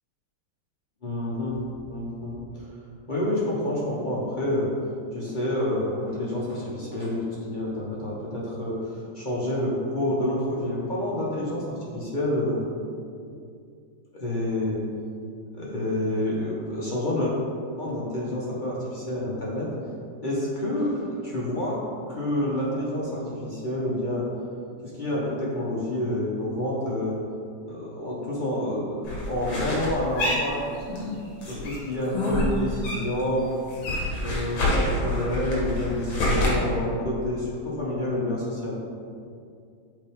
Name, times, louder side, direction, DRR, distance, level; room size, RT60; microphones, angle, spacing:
voice 1, 1.0-1.6 1.9-2.7 3.1-4.7 5.1-8.8 9.1-12.7 14.1-14.8 15.5-17.3 17.8-19.7 20.2-21.8 22.1-24.3 24.8-27.2 27.7-30.7 31.5-33.5 34.2-38.8, left 1 dB, 40° left, -6 dB, 0.7 m, -28 dB
sound 1, 29.0-31.1 31.4-33.2 33.5-36.5, left 1 dB, 65° left, 2.1 m, -27 dB
7.7 x 4.3 x 3.5 m, 2.3 s
omnidirectional pair, 2.3 m